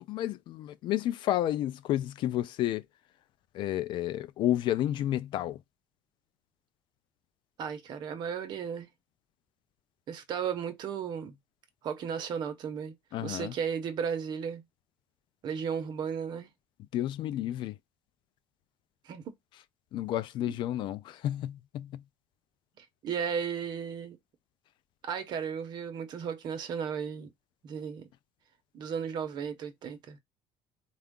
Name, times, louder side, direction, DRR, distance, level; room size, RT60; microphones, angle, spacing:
voice 1, 0.0-2.8 3.5-5.6 13.1-13.5 16.9-17.8 19.9-22.0, left 13 dB, 60° left, 0.4 m, -31 dB
voice 2, 7.6-8.9 10.1-11.4 11.8-12.9 13.2-14.6 15.4-16.5 19.0-19.2 22.8-24.2 25.0-27.3 27.6-28.1 28.7-30.2, right 7 dB, 50° right, 0.9 m, -35 dB
4.4 x 2.4 x 3.6 m
cardioid pair, 130°, 9 cm